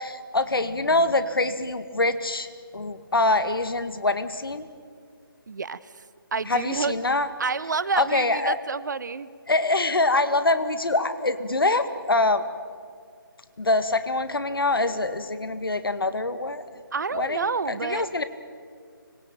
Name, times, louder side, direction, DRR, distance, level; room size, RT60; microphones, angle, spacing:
voice 1, 0.0-2.5 2.7-4.7 6.5-7.3 8.0-8.6 9.5-12.4 13.6-16.6 17.1-18.2, left 2 dB, 75° left, 10 dB, 2.1 m, -24 dB
voice 2, 5.5-6.0 6.3-6.9 7.4-9.3 16.9-18.1, right 5 dB, 55° right, 17 dB, 1.0 m, -29 dB
25.0 x 22.0 x 9.1 m, 2.1 s
figure-of-eight pair, 155°, 12 cm